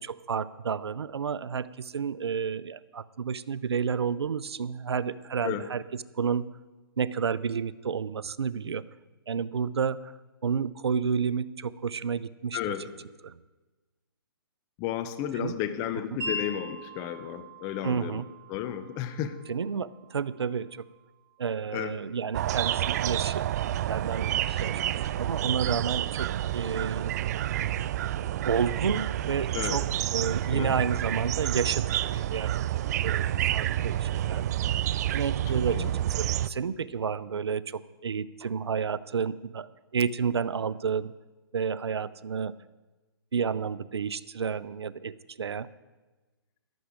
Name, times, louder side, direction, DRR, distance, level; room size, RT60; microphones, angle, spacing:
voice 1, 0.0-5.8 6.2-6.4 7.0-8.8 9.3-10.1 10.4-12.6 13.2-13.4 15.3-15.6 17.8-18.2 19.5-20.9 21.4-23.4 23.9-24.8 25.2-27.1 28.5-29.8 30.1-32.6 33.0-34.6 35.1-35.8 36.2-41.1 41.5-42.5 43.3-45.7, right 6 dB, 85° right, 18 dB, 0.6 m, -30 dB
voice 2, 12.5-12.9 14.8-18.2 18.5-19.4 21.7-21.9 29.5-29.8 30.5-30.7 35.5-35.9, left 11 dB, 25° left, 11 dB, 0.9 m, -33 dB
Wind chime, 16.2-22.3, equal, 20° right, 5.3 m, -42 dB
sound 1, 22.3-36.5, right 12 dB, 40° right, 0.4 m, -29 dB
14.0 x 11.5 x 5.0 m, 1.2 s
hypercardioid pair, 145°, 13 cm